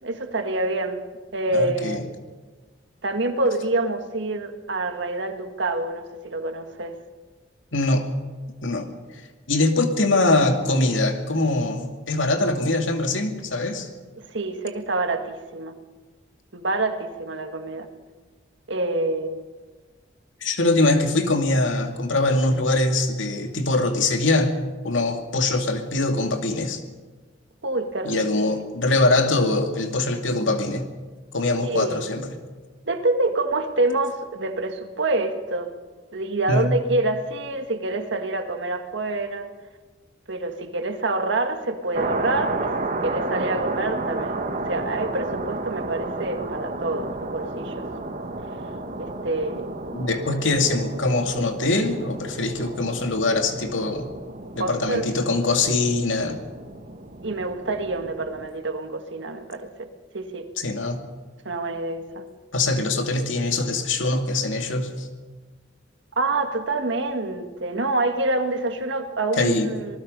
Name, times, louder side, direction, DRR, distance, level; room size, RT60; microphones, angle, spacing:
voice 1, 0.0-1.0 1.3-2.0 3.0-7.0 14.2-15.7 16.5-17.9 18.7-19.4 27.6-28.5 31.6-32.1 32.8-35.7 36.1-39.5 40.3-47.9 49.0-49.7 54.6-55.1 57.2-59.9 60.1-60.5 61.5-62.2 66.2-70.0, right 2 dB, 70° right, 6 dB, 1.9 m, -27 dB
voice 2, 1.5-2.0 7.7-8.1 8.6-8.9 9.5-13.9 20.4-24.6 24.8-26.8 28.0-30.9 31.3-32.4 36.5-36.8 49.9-54.1 54.5-56.4 60.6-61.0 62.5-65.1 69.4-69.7, left 2 dB, 85° left, 5 dB, 2.3 m, -23 dB
sound 1, 41.9-58.5, right 2 dB, 45° right, 1.6 m, -32 dB
26.0 x 19.5 x 5.4 m, 1.3 s
head